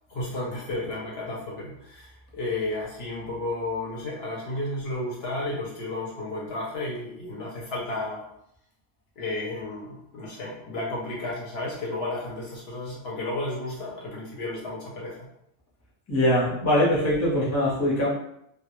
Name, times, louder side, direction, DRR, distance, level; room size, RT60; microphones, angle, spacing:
voice 1, 0.1-8.2 9.2-15.3, left 2 dB, 65° left, -4 dB, 0.7 m, -32 dB
voice 2, 16.1-18.1, left 1 dB, 20° left, -6 dB, 0.5 m, -22 dB
2.1 x 2.1 x 2.9 m, 0.76 s
omnidirectional pair, 1.3 m